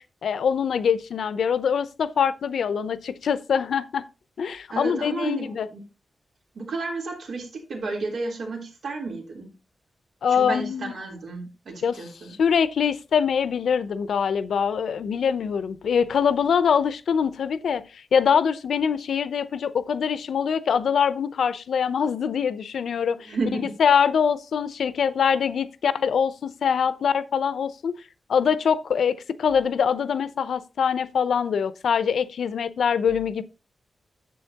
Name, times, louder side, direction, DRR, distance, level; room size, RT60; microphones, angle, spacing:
voice 1, 0.0-4.1 4.4-5.7 10.2-10.9 11.8-12.0 12.4-23.3 23.8-27.9 28.3-33.4, left 7 dB, 90° left, 0.7 m, -23 dB
voice 2, 4.7-5.8 6.5-9.5 10.3-12.4 23.2-23.8, right 3 dB, 70° right, 3.4 m, -32 dB
10.0 x 7.6 x 2.9 m
wide cardioid pair, 150°, 0 cm